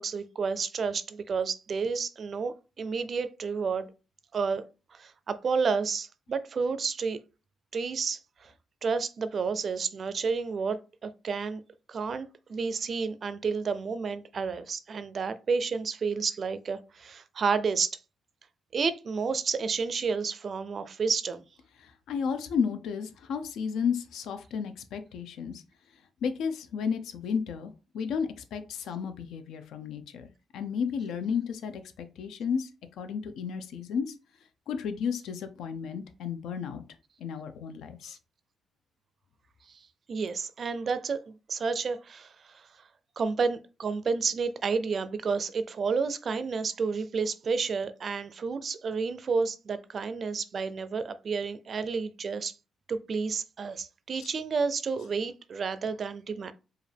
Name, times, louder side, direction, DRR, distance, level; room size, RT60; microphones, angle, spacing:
voice 1, 0.0-3.9 4.3-4.6 4.9-7.2 7.7-8.5 8.8-11.6 11.9-18.0 18.7-21.4 39.7-39.8 40.1-42.7 43.2-52.5 52.9-56.5, right 5 dB, 45° right, 0.4 m, -30 dB
voice 2, 21.8-25.6 26.2-30.3 30.5-32.7 33.0-34.1 34.7-36.8 37.2-38.2 54.1-54.3, left 6 dB, 85° left, 0.6 m, -33 dB
4.8 x 2.5 x 3.4 m
cardioid pair, 130°, 0 cm